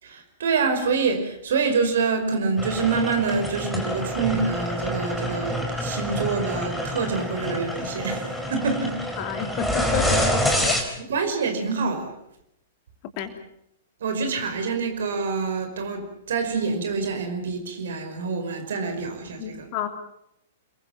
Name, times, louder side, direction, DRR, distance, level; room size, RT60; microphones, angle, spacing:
voice 1, 0.0-9.0 11.0-12.1 14.0-19.7, right 4 dB, 60° right, 6 dB, 5.3 m, -26 dB
sound 1, 2.6-10.8, equal, 5° left, 4.5 m, -27 dB
voice 2, 9.2-10.8 13.2-13.4 19.4-19.9, left 9 dB, 40° left, 7 dB, 3.0 m, -30 dB
29.0 x 22.0 x 5.8 m, 0.78 s
figure-of-eight pair, 105°, 0 cm